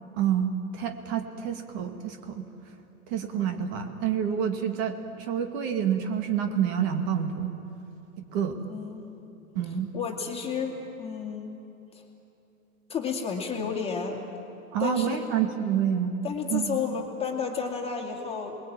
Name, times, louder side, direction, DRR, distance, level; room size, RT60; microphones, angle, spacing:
voice 1, 0.2-2.5 3.1-7.6 8.2-8.6 9.6-9.9 14.7-16.1 16.5-16.8, right 8 dB, 35° right, 5 dB, 2.1 m, -28 dB
voice 2, 8.7-9.0 9.9-11.5 12.9-14.2 14.8-15.3 16.2-18.6, left 6 dB, 15° left, 1 dB, 2.5 m, -31 dB
28.5 x 21.5 x 8.9 m, 2.9 s
hypercardioid pair, 140°, 45 cm